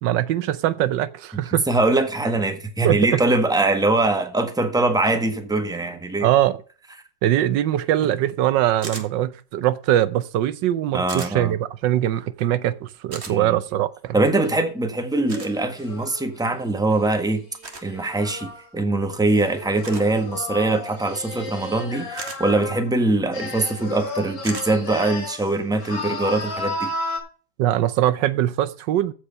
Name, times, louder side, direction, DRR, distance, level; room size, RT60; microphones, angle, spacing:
voice 1, 0.0-1.7 2.8-3.2 6.2-6.6 7.2-14.2 27.6-29.1, right 12 dB, 85° right, 1.4 m, -22 dB
voice 2, 1.7-6.3 10.9-11.6 13.3-13.6 14.1-17.4 17.8-26.9, right 2 dB, ahead, 1.3 m, -22 dB
sound 1, 8.8-9.1 11.1-11.3 13.1-13.3 15.3-15.5 17.6-17.9 19.8-20.1 22.2-22.4 24.4-24.7, right 3 dB, 40° right, 1.9 m, -35 dB
sound 2, 15.3-18.6 19.2-22.9 23.3-25.5 25.8-27.2, left 2 dB, 80° left, 3.9 m, -33 dB
15.0 x 5.0 x 5.3 m
omnidirectional pair, 1.9 m